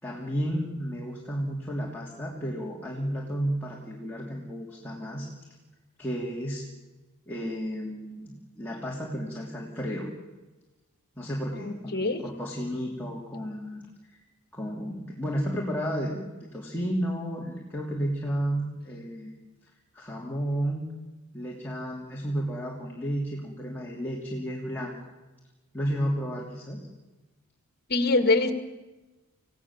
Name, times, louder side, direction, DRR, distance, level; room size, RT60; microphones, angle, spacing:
voice 1, 0.0-5.5 6.0-6.6 7.3-10.1 11.2-14.2 14.5-16.3 16.5-19.3 19.9-20.9 21.3-24.9 25.7-26.8, equal, 10° left, -4 dB, 3.1 m, -32 dB
voice 2, 11.6-12.2 27.9-28.5, left 3 dB, 45° left, 9 dB, 2.1 m, -24 dB
28.0 x 17.0 x 7.4 m, 1.1 s
head